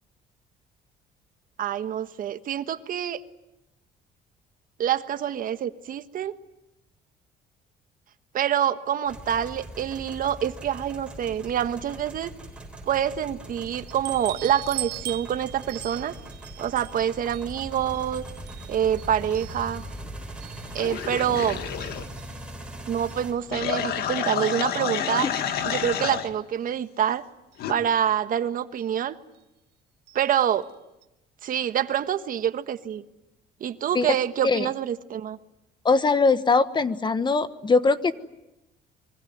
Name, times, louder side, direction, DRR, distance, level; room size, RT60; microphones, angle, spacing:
voice 1, 1.6-3.2 4.8-6.3 8.3-12.3 12.9-16.1 16.6-18.2 18.7-19.8 20.7-21.6 22.9-25.3 25.6-27.2 27.7-29.2 30.1-30.6 31.4-33.0 33.6-35.4, right 9 dB, 55° right, 10 dB, 1.4 m, -26 dB
sound 1, 9.1-23.3, right 1 dB, 5° right, 6.4 m, -41 dB
sound 2, 13.7-20.0 20.4-21.4 21.8-22.4 23.1-23.2 23.5-23.6 24.0-26.0 27.0-27.1 27.5-27.6 28.8-29.0 30.1-30.3 30.6-30.7 31.0-31.1, right 16 dB, 80° right, 1.1 m, -41 dB
sound 3, 20.8-22.0 23.5-26.3 27.6-27.7, left 9 dB, 70° left, 2.0 m, -29 dB
voice 2, 25.0-25.3 33.9-34.1 34.4-34.7 35.8-38.1, left 4 dB, 25° left, 12 dB, 1.3 m, -22 dB
26.0 x 24.0 x 9.4 m, 0.92 s
cardioid pair, 110°, 17 cm